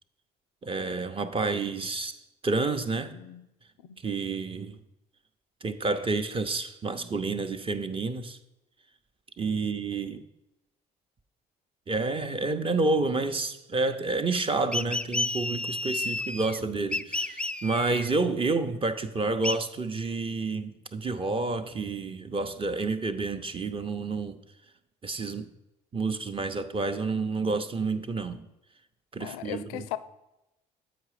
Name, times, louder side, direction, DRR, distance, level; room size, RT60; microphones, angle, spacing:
voice 1, 0.6-3.1 4.0-4.8 5.6-8.4 9.4-10.3 11.9-24.4 25.0-25.5 25.9-28.4 29.1-29.9, right 3 dB, 30° right, 0.7 m, -29 dB
voice 2, 3.0-3.5 3.8-4.0 9.6-9.7 29.2-30.0, left 14 dB, 80° left, 0.4 m, -38 dB
sound 1, 14.7-16.6 16.9-18.1 19.4-19.6, left 2 dB, 5° left, 0.3 m, -31 dB
8.0 x 5.0 x 4.9 m
hypercardioid pair, 60°, 19 cm